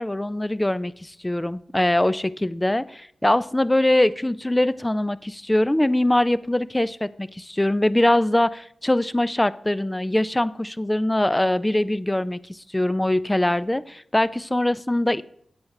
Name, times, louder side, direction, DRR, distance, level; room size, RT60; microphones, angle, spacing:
voice 1, 0.0-15.2, left 1 dB, 15° left, 0.4 m, -22 dB
8.6 x 5.9 x 5.4 m
cardioid pair, 50°, 0 cm